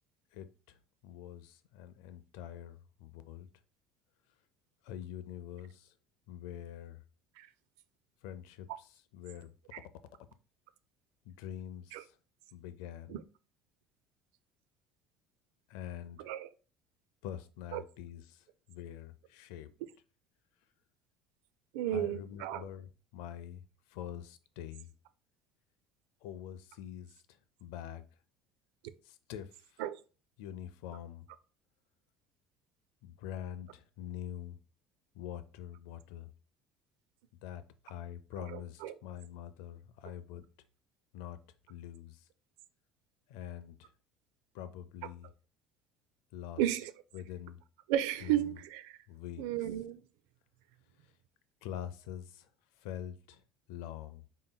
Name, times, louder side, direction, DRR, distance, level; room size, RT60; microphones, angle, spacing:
voice 1, 0.3-3.5 4.8-5.9 6.3-7.0 8.2-9.5 11.3-12.2 12.5-13.2 15.7-16.3 17.2-19.7 21.9-23.6 23.9-24.9 26.2-27.2 27.6-28.1 29.0-29.8 30.4-31.3 33.0-34.6 35.1-36.3 37.4-40.5 41.1-41.4 41.7-42.3 43.3-43.9 44.5-45.3 46.3-46.6 47.1-47.6 48.2-48.5 49.1-49.4 51.6-52.5 52.8-53.4 53.7-54.2, left 10 dB, 85° left, 0.4 m, -45 dB
voice 2, 16.2-16.5 17.7-17.8 21.7-22.7 29.8-30.0 38.4-38.9 46.6-46.9 47.9-49.0 49.4-50.0, right 12 dB, 85° right, 0.3 m, -33 dB
4.0 x 3.8 x 2.2 m
cardioid pair, 140°, 0 cm